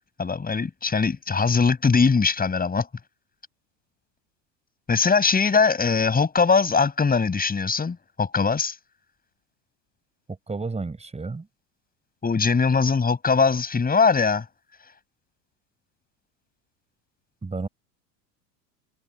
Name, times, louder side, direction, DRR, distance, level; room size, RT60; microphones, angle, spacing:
voice 1, 0.2-2.9 4.9-8.7 12.2-14.4, left 5 dB, 20° left, 6.5 m, -21 dB
voice 2, 10.3-11.5 17.4-17.7, right 3 dB, 15° right, 5.0 m, -31 dB
figure-of-eight pair, 85°, 48 cm